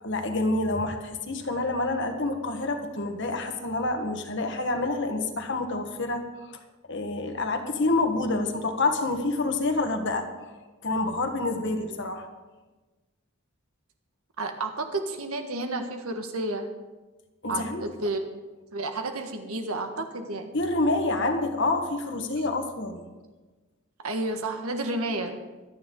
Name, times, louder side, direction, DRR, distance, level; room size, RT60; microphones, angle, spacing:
voice 1, 0.0-6.6 6.9-10.3 10.8-12.3 17.4-17.8 20.5-23.0, left 2 dB, 55° left, 5 dB, 1.5 m, -27 dB
voice 2, 14.4-16.7 17.5-18.2 18.7-20.5 24.0-25.4, right 2 dB, 80° right, 5 dB, 1.7 m, -31 dB
25.0 x 9.4 x 3.9 m, 1.2 s
head